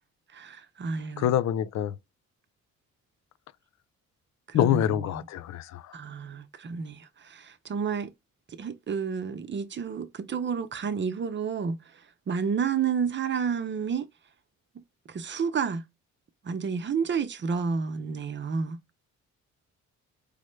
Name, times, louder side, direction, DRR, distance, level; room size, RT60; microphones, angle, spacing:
voice 1, 0.3-1.4 4.5-5.2 5.9-8.1 8.5-11.8 12.3-14.1 15.1-15.8 16.4-18.8, right 6 dB, 40° right, 0.7 m, -30 dB
voice 2, 1.2-1.9 4.5-6.0, left 11 dB, 65° left, 0.4 m, -26 dB
4.9 x 2.1 x 3.1 m
cardioid pair, 90°, 30 cm